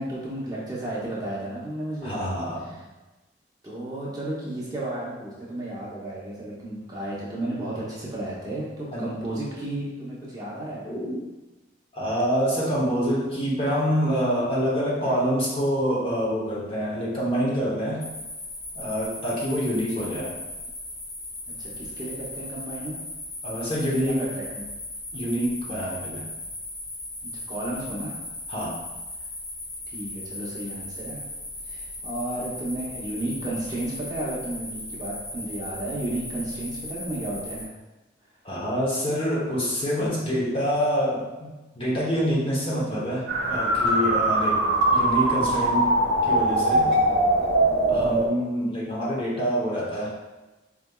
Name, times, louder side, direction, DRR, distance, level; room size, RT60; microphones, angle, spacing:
voice 1, 0.0-2.2 2.7-2.8 3.6-10.9 19.9-20.2 21.6-23.0 24.0-24.6 27.2-28.2 29.9-31.2 31.6-37.7, right 1 dB, 20° right, -7 dB, 0.8 m, -33 dB
voice 2, 2.0-2.8 8.9-9.2 10.9-11.2 11.9-18.0 18.7-20.4 23.4-24.3 25.1-26.3 28.5-28.8 38.4-41.5 41.7-44.6 44.9-45.9 46.2-46.9 47.9-50.1, equal, 30° left, -5 dB, 0.8 m, -26 dB
sound 1, 18.0-37.6, left 2 dB, 55° left, 1.3 m, -37 dB
sound 2, 43.3-48.3, right 1 dB, 60° right, 0.9 m, -21 dB
4.6 x 3.4 x 2.3 m, 1.1 s
head